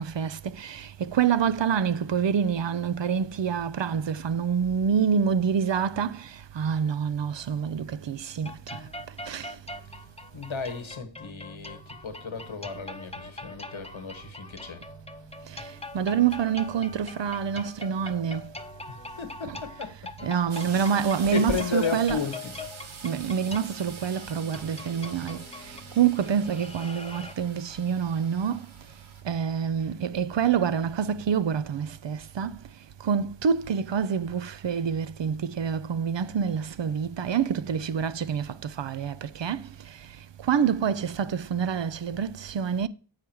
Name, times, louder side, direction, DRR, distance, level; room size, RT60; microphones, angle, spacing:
voice 1, 0.0-8.9 9.3-9.6 15.5-18.4 20.2-22.2 23.0-28.6 29.2-32.6 33.0-40.1 40.4-42.9, right 7 dB, 70° right, 0.5 m, -27 dB
sound 1, 8.4-27.3, left 3 dB, 15° left, 0.7 m, -42 dB
voice 2, 10.3-14.8 18.9-20.3 20.7-20.9 21.3-22.6, left 5 dB, 90° left, 1.2 m, -34 dB
sound 2, 20.5-29.2, right 4 dB, 90° right, 1.0 m, -45 dB
8.5 x 4.9 x 4.5 m
wide cardioid pair, 50°, 46 cm